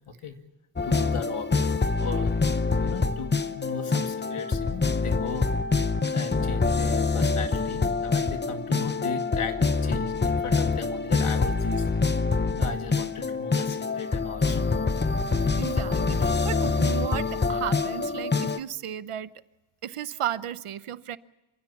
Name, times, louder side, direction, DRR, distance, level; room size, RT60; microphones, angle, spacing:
voice 1, 0.8-2.4 2.8-5.5 6.1-11.9 12.5-14.7, left 5 dB, 85° left, 6 dB, 2.3 m, -37 dB
sound 1, 0.8-18.6, left 4 dB, 20° left, 0.8 m, -25 dB
voice 2, 15.6-19.3 19.8-21.2, right 10 dB, 85° right, 15 dB, 0.9 m, -34 dB
27.0 x 16.0 x 7.0 m, 1.1 s
wide cardioid pair, 90°, 50 cm